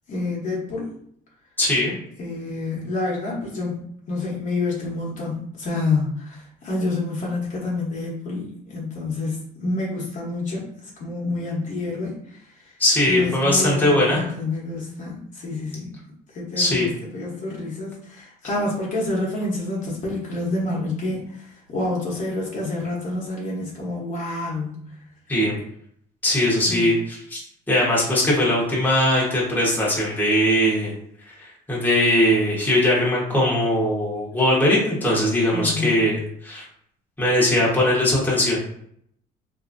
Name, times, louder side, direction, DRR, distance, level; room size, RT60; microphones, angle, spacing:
voice 1, 0.1-0.9 2.2-3.8 4.1-10.6 11.0-12.4 13.0-15.9 16.3-24.8 26.7-26.9 35.5-36.1, left 2 dB, 50° left, -4 dB, 1.0 m, -28 dB
voice 2, 1.6-1.9 12.8-14.2 16.6-16.9 25.3-25.5 26.2-27.4 27.7-30.9 31.4-36.6 37.2-38.6, left 1 dB, 10° left, -5 dB, 1.0 m, -20 dB
2.7 x 2.5 x 2.5 m, 0.68 s
cardioid pair, 110°, 17 cm